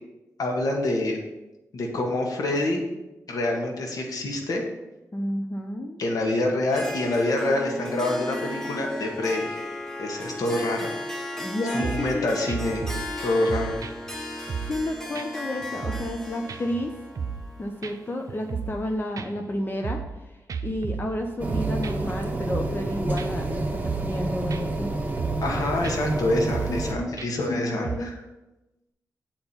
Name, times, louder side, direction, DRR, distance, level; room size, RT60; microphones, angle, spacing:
voice 1, 0.4-1.2 1.7-2.8 3.3-4.6 6.0-9.6 10.0-10.9 11.7-12.8 13.2-13.7 25.4-28.1, left 2 dB, 75° left, 1 dB, 1.7 m, -26 dB
voice 2, 5.1-6.0 11.4-12.3 14.7-16.9 17.6-20.0 20.3-20.4 20.6-24.9 26.7-27.1 27.5-28.1, left 1 dB, 35° left, 4 dB, 0.9 m, -31 dB
Harp, 6.7-18.5, left 1 dB, 10° left, 1.5 m, -35 dB
sound 1, 11.8-12.2 12.5-13.2 13.5-14.9 15.2-15.3 15.6-16.2 16.5-17.5 17.8-17.9 18.3-18.9 19.2-20.2 20.5-22.2 22.5-22.9 23.2-23.3 23.6-24.2 24.5-24.8 25.2-25.5 25.8-26.0 26.3-26.9 27.2-27.5 27.8-28.0, right 6 dB, 65° right, 0.7 m, -34 dB
sound 2, 21.4-26.9, right 2 dB, 25° right, 1.5 m, -29 dB
8.4 x 4.5 x 7.1 m, 1.0 s
cardioid pair, 70°, 6 cm